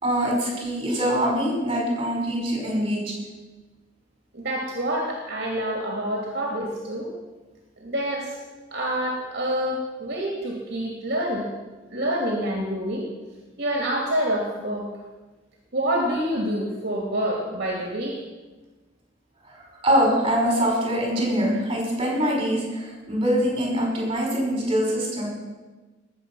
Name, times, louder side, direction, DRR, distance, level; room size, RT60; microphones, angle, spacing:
voice 1, 0.0-3.1 19.5-25.4, equal, 25° right, -1 dB, 5.4 m, -24 dB
voice 2, 4.3-7.1 7.8-8.4 8.7-11.5 11.9-13.1 13.6-14.9 15.7-18.2, right 1 dB, 55° right, -1 dB, 2.4 m, -27 dB
19.0 x 8.0 x 6.2 m, 1.2 s
head